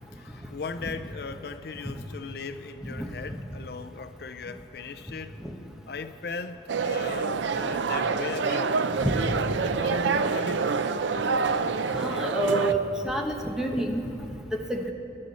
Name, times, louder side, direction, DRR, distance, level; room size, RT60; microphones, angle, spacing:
voice 1, 0.1-5.4 5.9-9.4 9.6-10.8, left 4 dB, 60° left, 9 dB, 0.5 m, -38 dB
sound 1, 6.7-12.7, right 4 dB, 85° right, 0.5 m, -27 dB
voice 2, 9.0-9.4 11.9-14.0 14.7-14.9, right 1 dB, 5° right, 1 dB, 1.1 m, -28 dB
22.5 x 12.0 x 4.2 m, 2.7 s
head